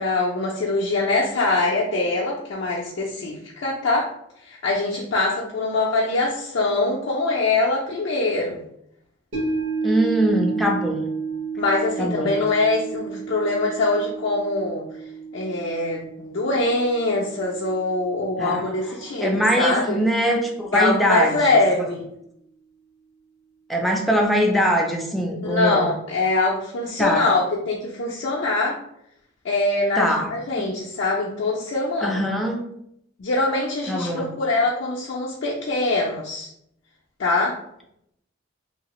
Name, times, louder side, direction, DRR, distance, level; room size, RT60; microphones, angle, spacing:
voice 1, 0.0-4.1 4.4-8.6 11.6-14.8 15.3-20.0 20.7-22.0 25.4-27.4 27.7-28.8 29.4-32.2 33.2-36.5 37.2-37.6, left 2 dB, 60° left, -4 dB, 0.4 m, -23 dB
sound 1, 9.3-19.7 20.1-20.2, right 4 dB, 65° right, 1.2 m, -32 dB
voice 2, 9.8-11.1 12.0-12.4 18.4-18.7 19.2-21.6 23.7-25.9 27.0-27.3 30.0-30.3 32.0-32.6 33.9-34.3, equal, ahead, 0 dB, 0.4 m, -22 dB
2.8 x 2.3 x 2.9 m, 0.74 s
head